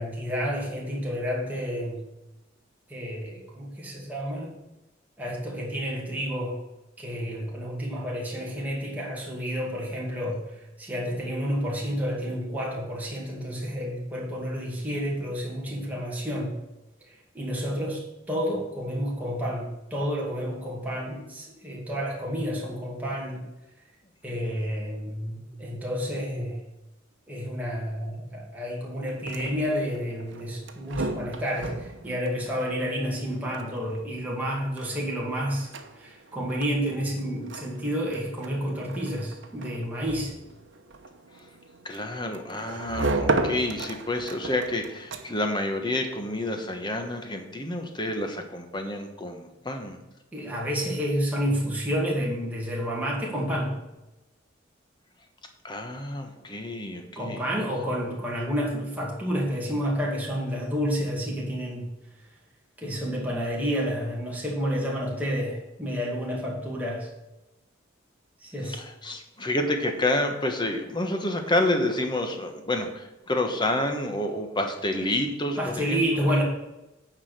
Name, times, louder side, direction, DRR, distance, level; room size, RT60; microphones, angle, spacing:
voice 1, 0.0-2.0 2.9-4.5 5.2-6.6 7.0-10.4 10.8-16.5 17.3-23.4 24.2-26.6 27.3-35.7 36.0-40.3 50.3-53.8 57.2-61.9 62.8-67.1 68.4-68.8 75.6-76.4, equal, 10° right, -4 dB, 2.2 m, -30 dB
sound 1, 29.0-45.6, right 2 dB, 70° right, 0.9 m, -35 dB
voice 2, 41.8-50.0 55.6-57.4 68.6-76.0, left 1 dB, 25° left, 5 dB, 1.1 m, -29 dB
9.3 x 4.9 x 6.6 m, 0.98 s
head